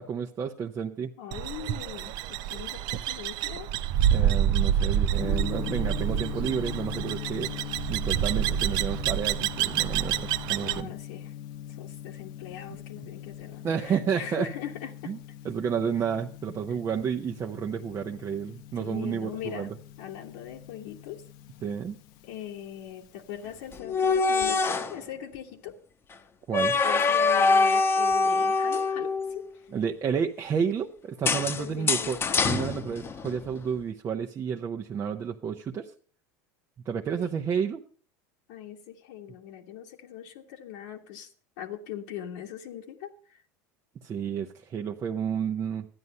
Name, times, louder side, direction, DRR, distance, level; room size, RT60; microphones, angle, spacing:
voice 1, 0.0-1.1 4.1-7.5 7.9-10.9 13.6-14.5 15.1-15.2 15.4-19.7 21.6-22.0 26.5-26.7 29.7-32.2 32.4-35.9 36.9-37.8 44.0-45.9, right 7 dB, 35° right, 2 dB, 0.9 m, -31 dB
voice 2, 1.2-3.7 10.6-11.3 11.8-15.1 16.7-16.8 18.7-19.7 20.0-21.2 22.2-25.8 26.7-29.4 31.6-32.4 37.2-37.3 38.5-41.3 41.6-43.4, left 10 dB, 75° left, 0 dB, 1.5 m, -40 dB
sound 1, 1.3-10.8, right 10 dB, 55° right, 0.6 m, -28 dB
Gong, 5.1-23.8, left 11 dB, 60° left, 0.9 m, -41 dB
sound 2, 23.7-25.0 26.5-29.4 31.2-33.5, left 4 dB, 25° left, 1.0 m, -24 dB
12.5 x 9.6 x 5.5 m, 0.43 s
supercardioid pair, 110°, 9 cm